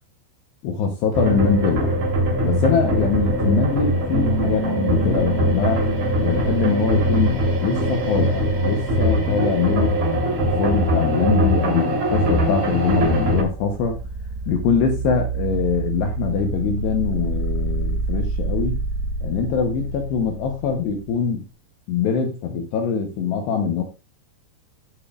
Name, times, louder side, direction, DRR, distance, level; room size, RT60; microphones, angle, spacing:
voice 1, 0.6-2.0 2.4-5.9 6.2-9.9 10.4-14.0 14.5-18.8 19.2-21.4 21.9-23.8, left 6 dB, 75° left, 4 dB, 2.6 m, -23 dB
sound 1, 1.1-13.4, equal, 45° right, 4.5 m, -21 dB
Bass guitar, 4.1-10.4, right 6 dB, 60° right, 2.7 m, -34 dB
sound 2, 13.1-21.3, right 3 dB, 90° right, 4.5 m, -28 dB
16.0 x 7.0 x 2.4 m, 0.28 s
omnidirectional pair, 5.8 m